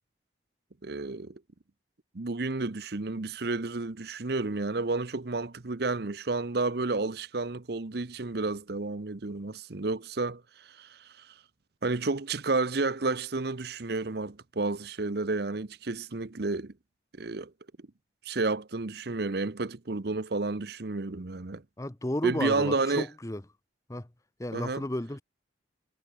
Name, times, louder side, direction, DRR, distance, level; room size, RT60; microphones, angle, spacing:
voice 1, 0.8-1.4 2.1-11.3 11.8-16.7 17.2-17.5 18.2-21.6 22.2-23.1 24.5-24.8, right 3 dB, 55° right, 0.8 m, -31 dB
voice 2, 21.8-23.4 23.9-24.1 24.4-25.2, left 1 dB, 15° left, 0.8 m, -33 dB
head